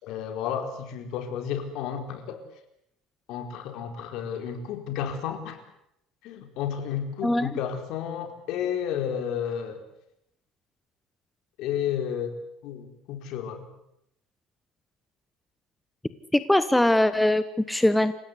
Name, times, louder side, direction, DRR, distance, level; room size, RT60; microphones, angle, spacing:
voice 1, 0.0-2.4 3.3-5.6 6.2-9.8 11.6-13.6, left 8 dB, 65° left, 7 dB, 4.6 m, -32 dB
voice 2, 16.3-18.1, left 1 dB, 5° left, 12 dB, 0.9 m, -21 dB
28.5 x 16.5 x 9.9 m, 0.79 s
cardioid pair, 150°, 0 cm